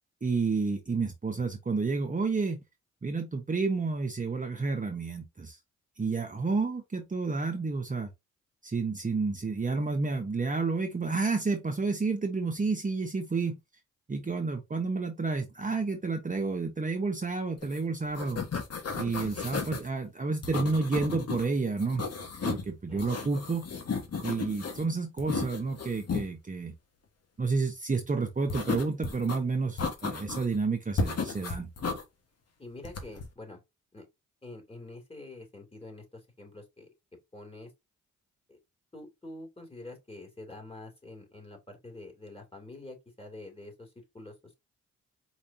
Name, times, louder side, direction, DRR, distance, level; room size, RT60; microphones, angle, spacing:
voice 1, 0.2-2.6 3.0-5.6 6.0-8.1 8.6-13.6 14.1-18.4 18.9-22.0 22.4-23.6 24.2-26.7 27.4-31.7, right 4 dB, 25° right, 0.9 m, -30 dB
sound 1, 17.6-17.8 18.0-19.9 20.4-21.4 21.8-22.7 23.0-24.8 25.2-26.3 28.5-29.4 29.8-30.6 31.0-32.0 32.8-33.3, left 4 dB, 50° left, 1.4 m, -34 dB
voice 2, 32.6-33.6 33.9-34.1 34.4-36.0 36.4-36.9 37.3-37.7 38.5-38.6 38.9-44.6, left 2 dB, 20° left, 2.8 m, -46 dB
4.7 x 4.2 x 2.7 m
cardioid pair, 65°, 31 cm